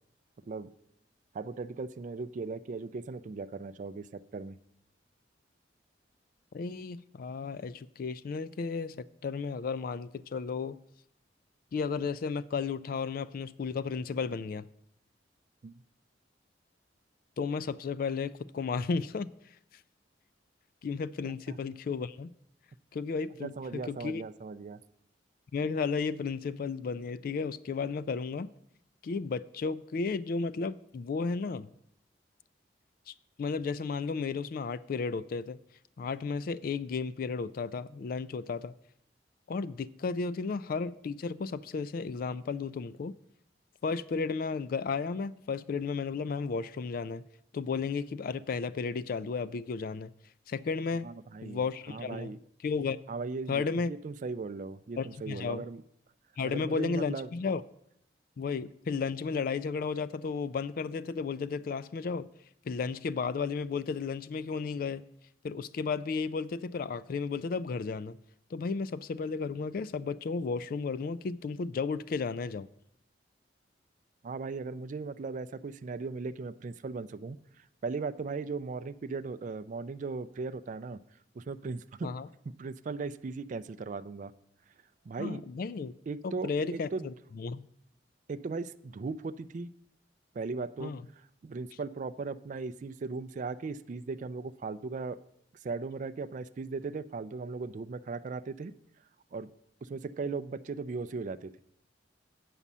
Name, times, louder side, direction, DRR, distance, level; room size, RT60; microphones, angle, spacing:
voice 1, 1.3-4.5 15.6-15.7 21.2-21.6 23.4-24.8 51.0-52.4 53.1-55.8 56.4-57.3 74.2-77.4 77.8-81.0 81.4-82.1 82.6-84.3 85.1-85.4 86.1-87.1 88.3-89.7 90.4-90.9 91.4-95.2 95.6-98.7 99.3-99.5 99.8-101.6, right 4 dB, 45° right, 0.3 m, -38 dB
voice 2, 6.5-10.8 11.7-14.6 17.4-19.3 20.8-22.3 22.9-24.2 25.5-28.5 29.0-31.7 33.1-35.6 36.0-38.7 39.5-43.1 43.8-47.2 47.5-50.1 50.5-51.1 51.4-52.4 52.6-53.0 53.5-53.9 55.0-55.6 56.4-57.6 58.4-62.3 62.7-65.0 65.4-68.2 68.5-72.7 82.0-82.3 85.2-85.9 86.2-87.7 90.8-91.0, left 5 dB, 55° left, 0.3 m, -33 dB
8.5 x 5.5 x 7.2 m
head